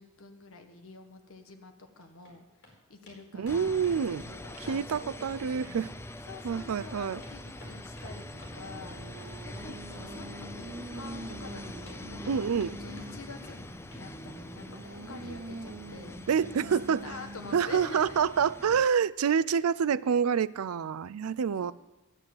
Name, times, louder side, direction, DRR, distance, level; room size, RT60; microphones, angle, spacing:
voice 1, 0.0-3.8 4.3-5.9 6.3-9.0 9.4-12.4 12.8-16.2 16.6-16.7 17.0-18.2 21.6-21.7, left 3 dB, 70° left, 6 dB, 1.6 m, -47 dB
sound 1, 1.8-2.3 2.6-2.7 3.1-3.2 3.4-5.4 5.7-6.4 6.7-11.1 11.4-12.7 13.0-13.6 13.9-14.1 14.4-14.5 14.8-14.9 15.2-15.3, left 1 dB, 50° left, 4.3 m, -53 dB
voice 2, 3.3-4.3 4.7-5.9 6.4-7.2 12.3-12.8 16.3-17.1 17.5-21.7, right 7 dB, 85° right, 17 dB, 0.4 m, -27 dB
sound 2, 3.5-18.9, left 1 dB, 10° left, 0.5 m, -44 dB
Singing, 7.9-13.3 13.9-17.8, right 2 dB, 45° right, 0.8 m, -45 dB
12.5 x 9.0 x 7.8 m, 1.1 s
head